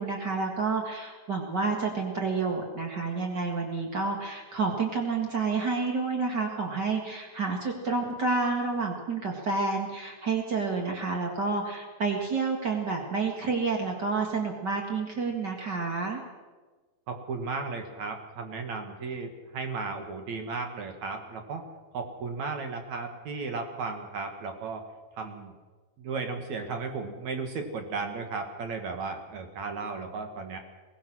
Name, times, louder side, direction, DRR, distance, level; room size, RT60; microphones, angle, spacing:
voice 1, 0.0-16.2, right 4 dB, 85° right, 1 dB, 0.9 m, -29 dB
voice 2, 17.1-21.6 21.9-24.8 25.2-25.5 26.0-30.6, right 4 dB, 55° right, 5 dB, 2.2 m, -35 dB
22.5 x 18.5 x 6.2 m, 1.3 s
omnidirectional pair, 5.5 m